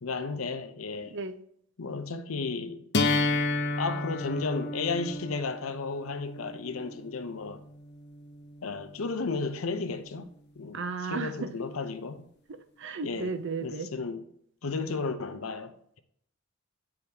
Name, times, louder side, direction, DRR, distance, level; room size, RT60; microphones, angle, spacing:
voice 1, 0.0-1.2 1.8-2.9 3.8-7.6 8.6-10.3 10.6-12.3 13.0-13.3 13.6-14.2 14.6-16.0, left 4 dB, 85° left, 0.7 m, -33 dB
sound 1, 2.9-8.9, left 2 dB, 55° left, 0.7 m, -32 dB
voice 2, 10.7-11.5 12.5-13.9, right 4 dB, 60° right, 0.6 m, -34 dB
9.4 x 5.1 x 2.9 m
head